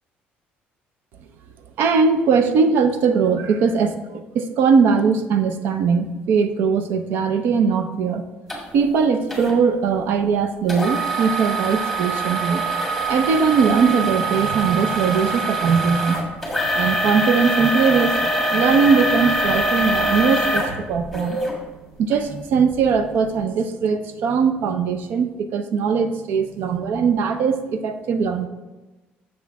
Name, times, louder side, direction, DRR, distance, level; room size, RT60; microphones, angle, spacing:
voice 1, 1.8-4.0 4.3-8.2 8.7-12.6 13.0-16.2 16.7-21.4 22.0-28.5, right 5 dB, 65° right, 8 dB, 0.7 m, -20 dB
sound 1, 8.5-8.6 9.3-9.5 10.7-21.5 22.1-22.2 22.8-22.9, right 1 dB, ahead, 1.6 m, -23 dB
8.0 x 6.3 x 3.6 m, 1.1 s
cardioid pair, 155°, 4 cm